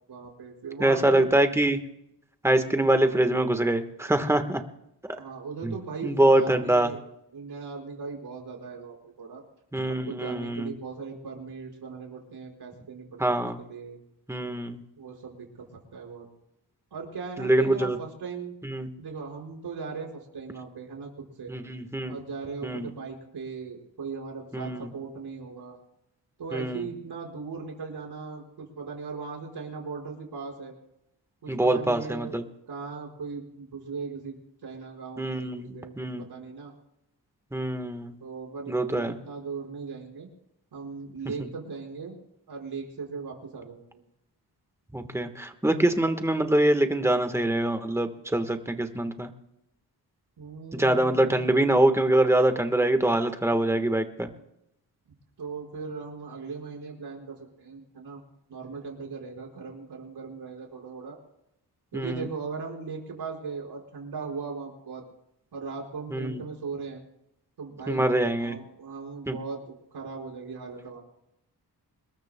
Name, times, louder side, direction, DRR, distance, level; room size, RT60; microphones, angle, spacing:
voice 1, 0.1-1.3 2.5-2.8 5.2-7.0 7.3-9.4 9.9-14.0 15.0-16.3 16.9-18.5 19.0-21.5 22.1-25.8 26.4-30.7 31.4-32.4 32.7-34.4 34.6-35.9 36.2-36.7 38.2-40.3 40.7-42.2 42.5-44.0 50.4-51.6 55.4-58.2 58.5-61.2 61.9-65.0 65.5-67.0 67.6-68.0 68.4-69.6 69.9-71.0, right 5 dB, 75° right, 0 dB, 5.2 m, -38 dB
voice 2, 0.8-1.8 2.4-4.6 5.6-5.8 6.0-6.9 9.7-10.7 13.2-13.6 14.3-14.8 17.4-18.0 18.6-18.9 21.5-22.2 22.6-22.9 24.5-24.9 26.5-26.9 31.5-32.5 35.2-36.3 37.5-38.1 38.7-39.2 44.9-49.3 50.7-54.3 61.9-62.3 66.1-66.4 67.9-68.6 69.3-69.4, right 1 dB, 5° right, 7 dB, 1.3 m, -24 dB
26.0 x 21.0 x 2.3 m, 0.83 s
wide cardioid pair, 135°, 40 cm